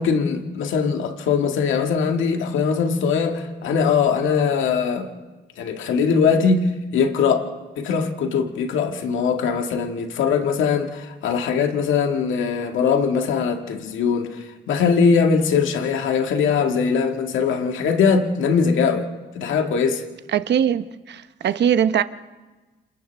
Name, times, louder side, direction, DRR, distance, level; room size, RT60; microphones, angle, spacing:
voice 1, 0.0-5.1 5.6-7.5 7.8-19.1 19.3-20.0, left 6 dB, 80° left, 1.8 m, -21 dB
voice 2, 20.3-22.0, right 9 dB, 60° right, 0.9 m, -21 dB
29.0 x 27.5 x 3.4 m
cardioid pair, 90°, 20 cm